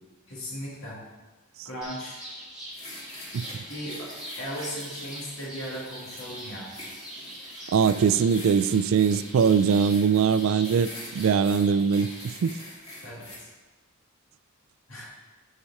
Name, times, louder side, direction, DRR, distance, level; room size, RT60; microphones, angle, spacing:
voice 1, 0.3-1.0 1.6-2.2 3.7-4.1 4.4-6.7 13.0-13.5 14.9-15.1, equal, 70° left, -5 dB, 2.4 m, -37 dB
sound 1, 1.8-12.3, equal, 5° right, 1.5 m, -43 dB
sound 2, 2.7-13.4, left 1 dB, 30° left, 2.2 m, -45 dB
voice 2, 7.7-12.6, right 6 dB, 65° right, 13 dB, 0.3 m, -22 dB
8.9 x 4.9 x 4.2 m, 1.2 s
head